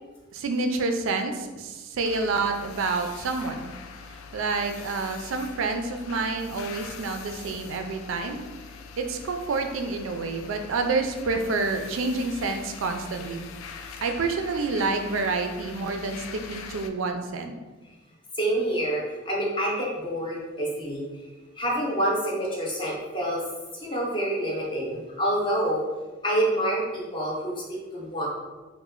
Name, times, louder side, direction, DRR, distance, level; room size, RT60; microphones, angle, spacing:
voice 1, 0.3-3.7 4.3-8.4 9.0-13.5 14.0-17.6, right 3 dB, 70° right, 5 dB, 0.4 m, -28 dB
sound 1, 2.0-16.9, left 5 dB, 80° left, 0.3 m, -43 dB
voice 2, 18.3-21.1 21.5-23.4 23.7-25.8 26.2-28.3, right 1 dB, 25° left, -4 dB, 0.6 m, -27 dB
3.1 x 2.1 x 3.6 m, 1.2 s
head